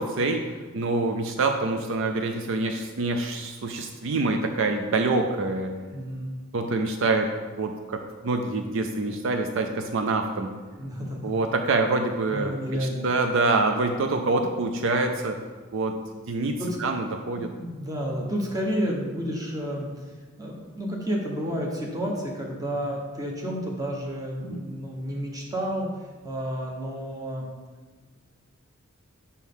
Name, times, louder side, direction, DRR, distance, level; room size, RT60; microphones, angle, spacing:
voice 1, 0.0-5.7 6.5-7.3 7.6-10.5 11.2-12.5 13.0-15.4 15.7-17.5 24.5-24.6, right 3 dB, 65° right, 5 dB, 0.5 m, -26 dB
voice 2, 5.9-6.3 10.8-11.4 12.3-13.3 16.6-16.8 17.3-27.4, equal, 15° right, -1 dB, 1.0 m, -31 dB
6.2 x 5.6 x 3.6 m, 1.4 s
head